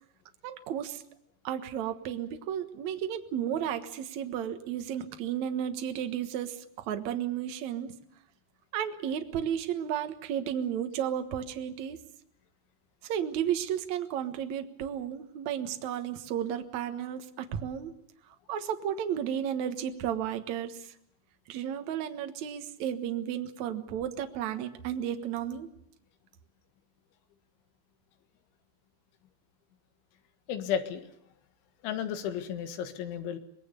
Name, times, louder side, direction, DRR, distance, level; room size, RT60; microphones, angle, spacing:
voice 1, 0.4-1.0 1.4-7.9 8.7-12.0 13.0-17.9 18.5-20.9 21.5-25.7, right 9 dB, 65° right, 7 dB, 1.8 m, -33 dB
voice 2, 30.5-31.0 31.8-33.4, left 8 dB, 85° left, 8 dB, 4.0 m, -33 dB
25.0 x 20.5 x 6.8 m, 0.77 s
omnidirectional pair, 5.3 m